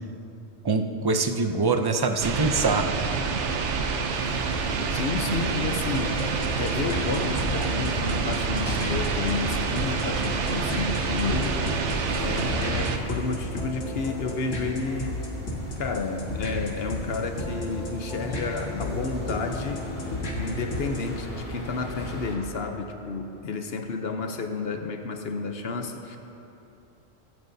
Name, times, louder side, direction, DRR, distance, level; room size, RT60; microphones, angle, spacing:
voice 1, 0.6-2.9, right 4 dB, 35° right, 6 dB, 0.4 m, -24 dB
sound 1, 2.2-13.0, right 5 dB, 75° right, 1.1 m, -27 dB
sound 2, 4.1-22.4, left 1 dB, 40° left, 2.3 m, -39 dB
voice 2, 4.9-6.2 6.6-11.6 12.1-15.1 15.8-19.9 20.2-26.2, left 4 dB, 60° left, 5 dB, 1.0 m, -31 dB
sound 3, 6.0-21.2, left 1 dB, 90° left, 2.0 m, -34 dB
24.5 x 9.1 x 2.7 m, 2.9 s
omnidirectional pair, 1.2 m